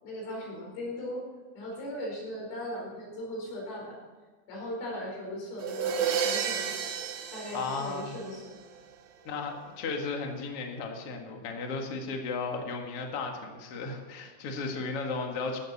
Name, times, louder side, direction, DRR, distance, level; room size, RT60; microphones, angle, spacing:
voice 1, 0.0-1.2 1.6-4.0 4.5-6.7 7.3-8.6, left 1 dB, 85° left, -1 dB, 7.0 m, -38 dB
sound 1, 5.6-8.6, right 7 dB, 70° right, 3.0 m, -31 dB
voice 2, 7.5-8.2 9.2-15.6, left 4 dB, 50° left, 2 dB, 1.8 m, -35 dB
16.5 x 13.0 x 4.2 m, 1.4 s
omnidirectional pair, 5.4 m